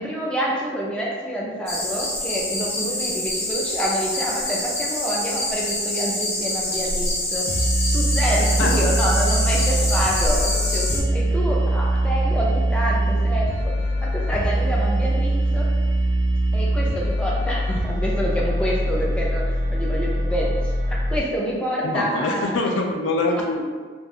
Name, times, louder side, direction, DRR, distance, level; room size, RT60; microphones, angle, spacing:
voice 1, 0.0-7.5 7.9-13.7 14.0-15.7 16.5-22.5, equal, 5° left, -4 dB, 0.4 m, -27 dB
sound 1, 1.7-11.0, left 1 dB, 35° left, 0.7 m, -26 dB
sound 2, 7.5-21.2, right 1 dB, 60° right, 0.4 m, -22 dB
voice 2, 21.8-23.6, left 2 dB, 80° left, 1 dB, 0.4 m, -24 dB
2.4 x 2.3 x 3.4 m, 1.5 s
head